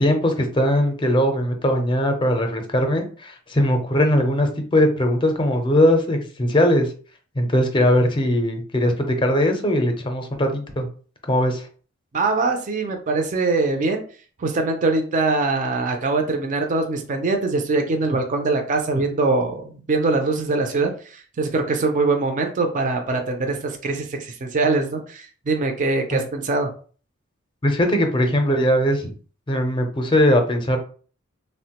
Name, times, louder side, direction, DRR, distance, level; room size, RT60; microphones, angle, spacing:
voice 1, 0.0-6.9 7.4-10.9 11.3-11.7 26.1-26.2 27.6-29.1 29.5-30.8, left 1 dB, 25° left, 5 dB, 0.5 m, -20 dB
voice 2, 12.1-14.0 14.4-26.7, right 3 dB, 40° right, 4 dB, 0.4 m, -23 dB
3.3 x 2.1 x 2.8 m, 0.41 s
head